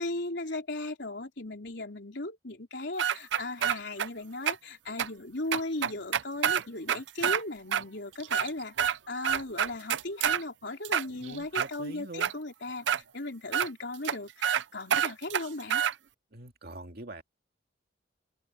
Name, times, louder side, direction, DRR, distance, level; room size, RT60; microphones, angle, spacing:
voice 1, 0.0-15.8, left 2 dB, 65° left, 4.0 m, -37 dB
sound 1, 3.0-4.1 4.5-4.6 5.0-5.1 5.5-7.4 7.7-7.8 8.2-9.0 9.2-10.4 10.8-11.7 12.2-12.3 12.9-13.0 13.5-13.7 14.0-14.1 14.4-14.6 14.9-15.9, right 9 dB, 75° right, 0.6 m, -27 dB
voice 2, 11.1-12.3 16.3-17.2, right 2 dB, 55° right, 2.4 m, -44 dB
open air
head